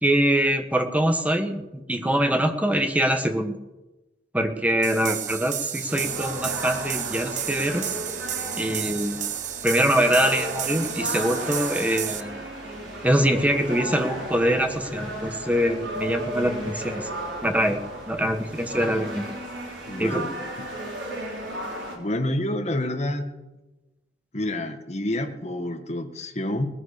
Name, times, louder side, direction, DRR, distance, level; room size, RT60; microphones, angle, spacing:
voice 1, 0.0-3.6 4.3-7.9 8.6-9.2 9.6-12.4 13.0-17.1 17.4-17.8 18.1-19.3 20.0-20.2, right 1 dB, 10° right, 6 dB, 1.2 m, -24 dB
sound 1, 4.8-12.2, right 10 dB, 40° right, 0.8 m, -32 dB
sound 2, 5.9-22.0, right 1 dB, 80° right, 5.0 m, -34 dB
voice 2, 19.9-20.3 20.6-20.7 21.9-23.3 24.3-26.7, left 1 dB, 35° left, 5 dB, 1.6 m, -28 dB
19.5 x 9.8 x 6.8 m, 1.1 s
head